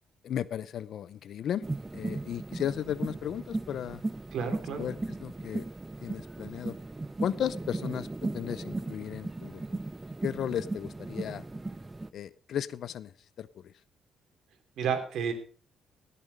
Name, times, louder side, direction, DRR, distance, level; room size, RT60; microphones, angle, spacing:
voice 1, 0.2-1.6 1.9-4.0 4.8-5.7 6.0-6.7 7.2-8.1 8.3-9.6 10.2-11.4 12.1-13.7, left 9 dB, 70° left, 18 dB, 0.7 m, -35 dB
sound 1, 1.6-12.1, right 2 dB, 20° right, 0.6 m, -37 dB
voice 2, 4.3-4.9 14.8-15.3, right 7 dB, 75° right, 6 dB, 3.0 m, -31 dB
18.0 x 7.0 x 5.1 m, 0.42 s
cardioid pair, 90°, 0 cm